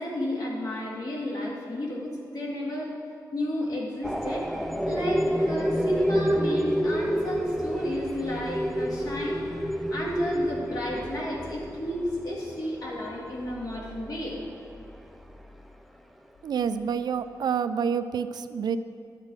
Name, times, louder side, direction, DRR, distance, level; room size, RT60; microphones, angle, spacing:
voice 1, 0.0-3.0 3.3-4.5 4.8-9.4 9.9-14.4, left 1 dB, 60° left, -4 dB, 2.4 m, -31 dB
sound 1, 4.0-15.7, equal, ahead, 0.4 m, -30 dB
voice 2, 16.4-18.8, right 7 dB, 70° right, 11 dB, 0.4 m, -28 dB
12.0 x 7.6 x 4.8 m, 2.3 s
wide cardioid pair, 140°, 7 cm